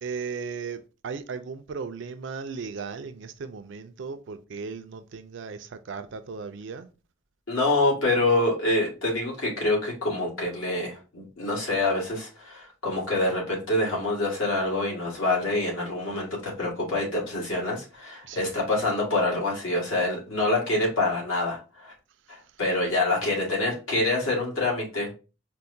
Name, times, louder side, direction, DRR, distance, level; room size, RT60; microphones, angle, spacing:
voice 1, 0.0-6.9 8.3-8.4 18.2-18.5, right 5 dB, 65° right, 0.4 m, -36 dB
voice 2, 7.5-21.9 22.3-25.1, left 2 dB, 85° left, 1.8 m, -26 dB
4.5 x 2.1 x 2.6 m
head